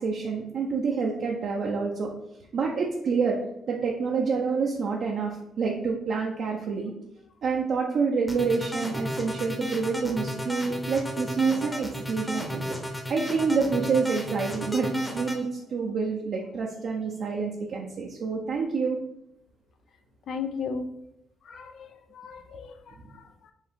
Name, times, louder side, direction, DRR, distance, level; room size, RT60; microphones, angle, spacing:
voice 1, 0.0-2.1 2.5-3.4 3.7-6.9 7.4-12.6 13.1-14.9 15.1-19.0, right 5 dB, 60° right, -1 dB, 0.6 m, -27 dB
sound 1, 8.3-15.4, equal, 10° left, 0.9 m, -33 dB
voice 2, 20.3-20.9 21.4-23.5, left 5 dB, 65° left, 7 dB, 0.5 m, -36 dB
4.5 x 2.7 x 3.5 m, 0.80 s
cardioid pair, 90°, 0 cm